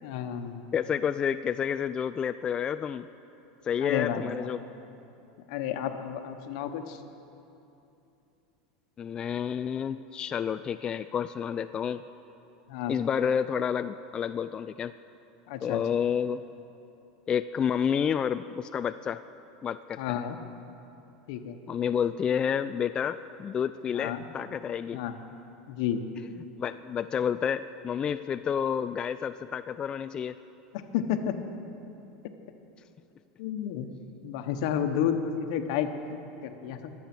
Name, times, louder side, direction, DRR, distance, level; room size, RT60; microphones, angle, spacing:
voice 1, 0.0-0.7 3.8-4.5 5.5-7.0 12.7-13.0 15.5-15.8 20.0-20.4 21.3-21.6 23.9-24.3 24.9-25.1 25.7-26.0 30.7-31.4 33.4-33.9 34.2-36.9, left 9 dB, 70° left, 7 dB, 1.1 m, -31 dB
voice 2, 0.7-3.1 3.6-4.6 9.0-12.0 12.9-14.9 15.6-16.4 17.3-19.2 19.6-20.2 21.7-25.0 26.6-30.3, left 8 dB, 25° left, 9 dB, 0.3 m, -29 dB
24.5 x 8.5 x 6.1 m, 2.8 s
supercardioid pair, 120°, 3 cm